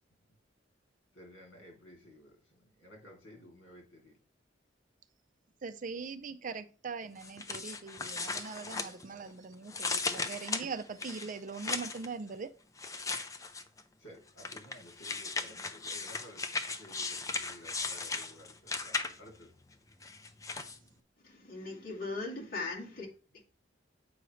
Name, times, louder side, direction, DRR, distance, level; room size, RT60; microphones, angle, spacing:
voice 1, 1.1-4.2 9.1-9.3 14.0-19.5, equal, 75° left, 1 dB, 3.0 m, -54 dB
voice 2, 5.6-12.5, right 4 dB, 45° right, 12 dB, 0.5 m, -41 dB
sound 1, 7.2-9.3 9.7-12.1 12.8-13.8 14.4-19.4 20.0-20.8, left 4 dB, 20° left, 0.5 m, -37 dB
voice 3, 21.2-23.1, left 3 dB, 50° left, -3 dB, 2.4 m, -39 dB
7.8 x 5.1 x 3.2 m, 0.37 s
head